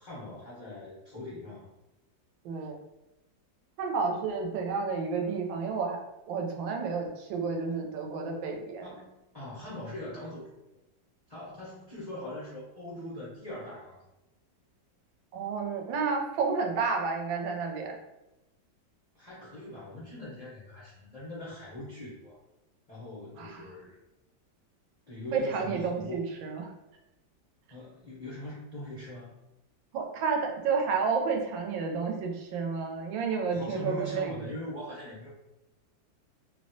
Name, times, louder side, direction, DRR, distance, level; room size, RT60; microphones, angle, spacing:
voice 1, 0.0-1.6 8.8-10.5 11.3-14.0 19.1-22.4 22.9-23.9 25.1-26.2 27.7-29.3 33.5-35.3, left 1 dB, 90° left, -9 dB, 0.3 m, -41 dB
voice 2, 2.4-2.8 3.8-6.0 6.3-8.9 15.3-18.0 23.4-23.7 25.3-26.7 29.9-34.2, right 5 dB, 85° right, 2 dB, 1.3 m, -31 dB
3.1 x 2.1 x 2.6 m, 0.96 s
omnidirectional pair, 2.1 m